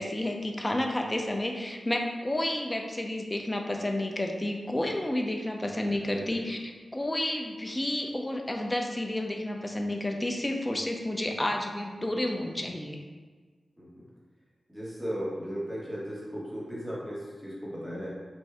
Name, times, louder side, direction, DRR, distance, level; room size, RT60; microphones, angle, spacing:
voice 1, 0.0-13.0, left 1 dB, 20° left, 2 dB, 0.5 m, -31 dB
voice 2, 6.1-6.4 13.8-14.0 14.7-18.1, equal, 5° right, -7 dB, 1.4 m, -36 dB
3.5 x 2.6 x 3.3 m, 1.4 s
cardioid pair, 60°, 0 cm